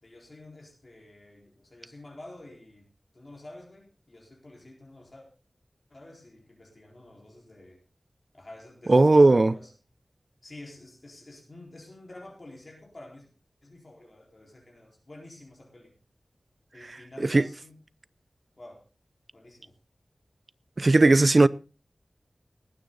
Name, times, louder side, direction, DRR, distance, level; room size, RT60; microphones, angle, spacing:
voice 1, 0.0-2.9 3.1-5.3 5.9-7.8 8.3-9.7 10.4-13.3 13.6-15.9 16.7-17.8 18.6-18.8 19.3-19.7, left 2 dB, 45° left, 4.3 m, -49 dB
voice 2, 8.9-9.5 17.2-17.4 20.8-21.5, right 2 dB, 50° right, 0.5 m, -17 dB
19.5 x 9.4 x 3.9 m
wide cardioid pair, 80°, 0 cm